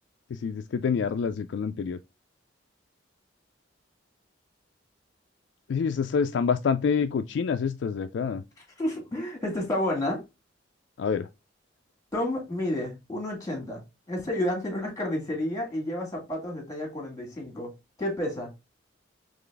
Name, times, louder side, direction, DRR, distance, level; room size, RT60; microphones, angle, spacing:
voice 1, 0.4-2.0 5.7-8.4 11.0-11.3, left 6 dB, 65° left, 0.3 m, -27 dB
voice 2, 8.8-10.2 12.1-13.8 14.1-17.7 18.0-18.5, left 1 dB, 15° left, 1.7 m, -30 dB
3.9 x 3.2 x 3.3 m
head